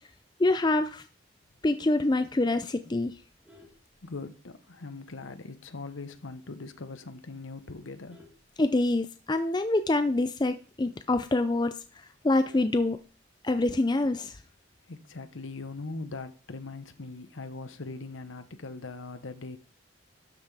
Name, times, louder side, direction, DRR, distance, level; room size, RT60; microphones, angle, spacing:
voice 1, 0.4-1.0 1.6-3.1 8.6-11.7 12.2-13.0 13.4-14.4, left 2 dB, 20° left, 0.4 m, -25 dB
Vehicle horn car horn honking, 3.2-4.7 5.1-5.4 5.7-5.8 6.2-6.3 6.6-7.0 7.5-9.4 9.7-9.8 10.1-10.2 10.6-10.7 11.1-11.2 11.4-13.5 14.7-15.1, left 2 dB, 5° right, 2.3 m, -59 dB
voice 2, 4.0-8.2 14.9-19.6, left 3 dB, 75° left, 1.0 m, -41 dB
12.5 x 5.7 x 4.8 m
head